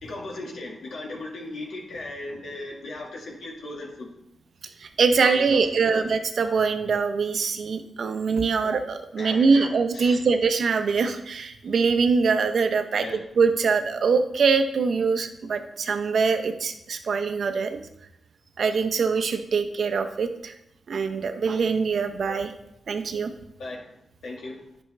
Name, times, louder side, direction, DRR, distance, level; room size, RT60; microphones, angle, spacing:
voice 1, 0.0-4.1 5.2-6.1 9.2-10.2 12.9-13.3 23.6-23.9 24.2-24.6, left 2 dB, 80° left, -1 dB, 1.8 m, -37 dB
voice 2, 4.8-13.0 13.4-17.8 18.6-20.5 20.9-22.5 22.9-23.3, right 5 dB, 70° right, 8 dB, 0.7 m, -23 dB
10.5 x 5.3 x 3.3 m, 0.81 s
cardioid pair, 60°, 0 cm